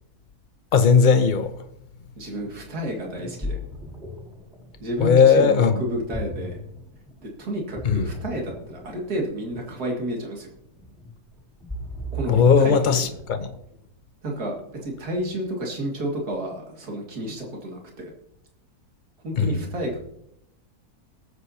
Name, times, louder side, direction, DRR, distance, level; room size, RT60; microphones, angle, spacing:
voice 1, 0.7-1.5 5.0-5.8 7.8-8.1 12.3-13.5 19.4-19.7, left 6 dB, 40° left, 0.8 m, -18 dB
voice 2, 2.2-3.6 4.8-6.6 7.2-10.5 12.1-13.1 14.2-18.1 19.2-20.0, right 1 dB, 80° right, 2.6 m, -31 dB
Ocean, 3.1-13.8, left 1 dB, ahead, 2.1 m, -37 dB
20.0 x 8.1 x 2.8 m
omnidirectional pair, 1.6 m